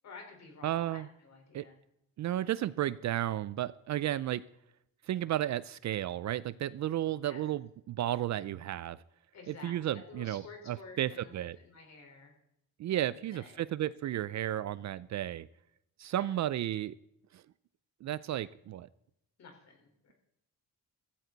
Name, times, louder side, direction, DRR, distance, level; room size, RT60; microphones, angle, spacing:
voice 1, 0.0-1.8 7.2-7.5 9.3-12.3 13.0-13.6 16.1-16.4 19.4-20.1, left 4 dB, 45° left, 2 dB, 4.3 m, -51 dB
voice 2, 0.6-1.1 1.5-1.7 2.2-4.4 5.0-9.0 9.5-11.6 12.8-15.5 16.0-17.0 17.3-17.4 18.0-18.9, right 12 dB, 50° right, 18 dB, 0.4 m, -33 dB
15.5 x 15.0 x 4.0 m, 0.79 s
cardioid pair, 160°, 36 cm